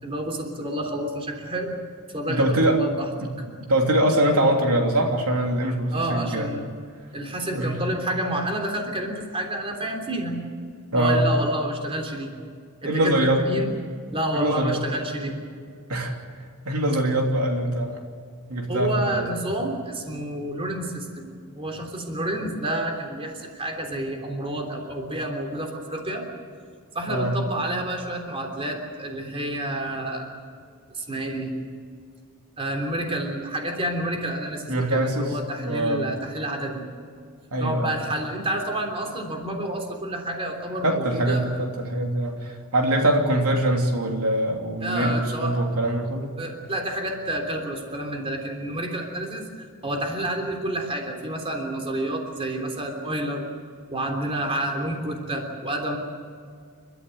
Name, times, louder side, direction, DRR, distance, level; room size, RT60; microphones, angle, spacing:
voice 1, 0.0-1.7 2.1-3.1 5.9-6.7 7.1-10.4 10.9-12.3 12.8-13.7 14.1-15.4 18.7-26.3 26.9-30.3 30.9-31.5 32.6-36.8 37.6-41.5 44.8-45.6 46.4-49.4 49.8-53.4 53.9-56.0, right 1 dB, 25° right, 3 dB, 3.4 m, -29 dB
voice 2, 2.3-2.8 3.2-3.3 3.6-6.5 7.5-7.8 10.9-11.3 12.8-13.5 14.3-14.8 15.9-16.1 16.6-18.0 18.5-19.2 27.1-27.4 34.7-35.4 35.6-36.0 37.5-37.9 40.8-46.4, right 1 dB, 75° right, 2 dB, 3.1 m, -23 dB
29.5 x 14.0 x 7.8 m, 2.1 s
head